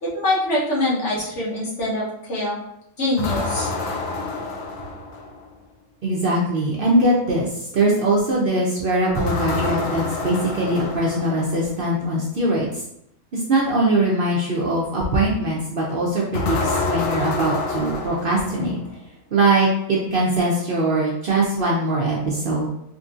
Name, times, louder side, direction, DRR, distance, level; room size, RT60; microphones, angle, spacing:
voice 1, 0.0-2.6 3.0-3.7, left 1 dB, 65° left, -5 dB, 1.3 m, -24 dB
sound 1, 3.2-5.5 9.1-11.7 16.3-19.0, left 3 dB, 85° left, 1.0 m, -27 dB
voice 2, 6.0-7.5 7.7-12.7 13.5-18.8 19.3-22.7, right 1 dB, 60° right, -3 dB, 0.6 m, -21 dB
3.6 x 2.6 x 2.4 m, 0.77 s
omnidirectional pair, 1.4 m